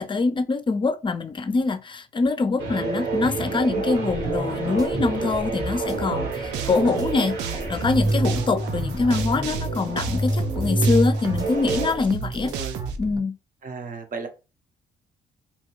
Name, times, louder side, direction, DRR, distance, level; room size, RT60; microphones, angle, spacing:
voice 1, 0.0-7.4 7.7-12.5 13.0-13.4, left 4 dB, 30° left, 0.5 m, -24 dB
sound 1, 2.6-11.9, right 2 dB, 70° right, 1.4 m, -27 dB
sound 2, 3.9-13.2, equal, 20° right, 0.8 m, -37 dB
voice 2, 6.1-6.5 6.8-7.3 8.0-8.4 11.9-12.0 12.4-12.8 13.6-14.3, right 4 dB, 50° right, 0.8 m, -36 dB
sound 3, 6.1-13.0, right 9 dB, 85° right, 0.4 m, -33 dB
2.8 x 2.3 x 3.0 m
supercardioid pair, 55°, 18 cm